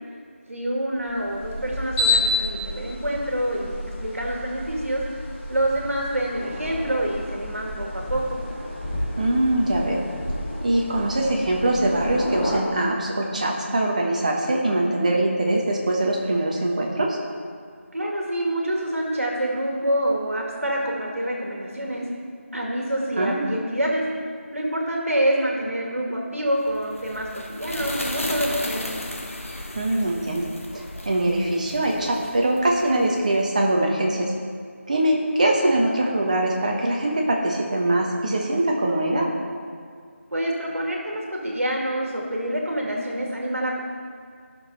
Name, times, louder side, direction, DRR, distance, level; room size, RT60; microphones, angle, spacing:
voice 1, 0.5-5.0 5.5-8.4 17.9-22.1 22.5-24.0 24.5-29.0 40.3-43.8, right 1 dB, 80° right, -1 dB, 2.2 m, -26 dB
sound 1, 1.0-12.6, left 2 dB, 5° left, 1.4 m, -30 dB
voice 2, 9.2-10.0 10.3-17.2 23.2-23.5 29.7-34.3 34.9-39.3, right 1 dB, 30° right, 0 dB, 1.3 m, -23 dB
sound 2, 26.7-33.3, left 1 dB, 75° left, 1.3 m, -35 dB
14.5 x 6.5 x 4.1 m, 2.2 s
figure-of-eight pair, 170°, 7 cm